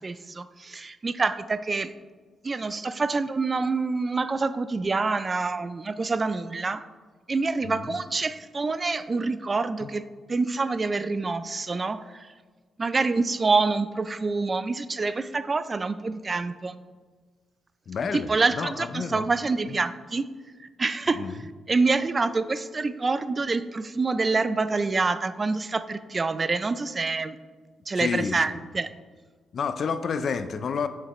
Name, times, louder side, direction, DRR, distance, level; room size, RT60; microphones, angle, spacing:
voice 1, 0.0-1.9 2.4-6.8 7.3-10.0 10.3-12.3 12.8-16.8 18.1-20.2 20.8-21.2 21.7-27.4 27.9-28.9, right 3 dB, 35° right, 13 dB, 0.3 m, -26 dB
voice 2, 7.6-8.0 9.8-9.9 17.9-19.3 19.7-19.8 21.1-21.4 27.9-28.4 29.5-30.9, left 6 dB, 60° left, 11 dB, 0.4 m, -30 dB
6.5 x 6.4 x 3.1 m, 1.4 s
cardioid pair, 75°, 0 cm